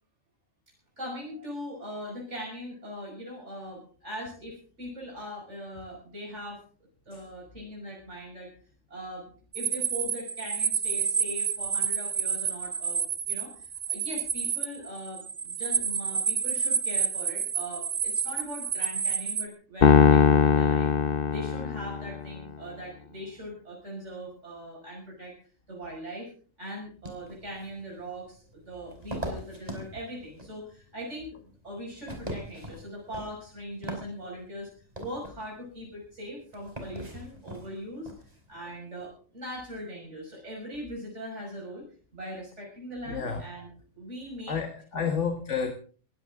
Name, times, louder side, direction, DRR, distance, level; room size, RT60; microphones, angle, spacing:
voice 1, 1.0-6.6 7.1-8.5 8.9-20.9 21.3-25.3 25.7-26.3 26.6-34.7 35.0-38.1 38.5-41.8 42.1-44.6 44.9-45.2, equal, 85° right, -2 dB, 6.3 m, -40 dB
sound 1, 9.5-19.5, right 6 dB, 50° right, 1.2 m, -29 dB
Piano, 19.8-22.2, left 7 dB, 50° left, 1.1 m, -20 dB
sound 2, 27.0-38.6, right 1 dB, 35° right, 4.8 m, -42 dB
voice 2, 43.1-43.4 44.5-45.7, left 6 dB, 90° left, 5 dB, 2.2 m, -30 dB
21.5 x 16.0 x 3.7 m, 0.40 s
omnidirectional pair, 1.2 m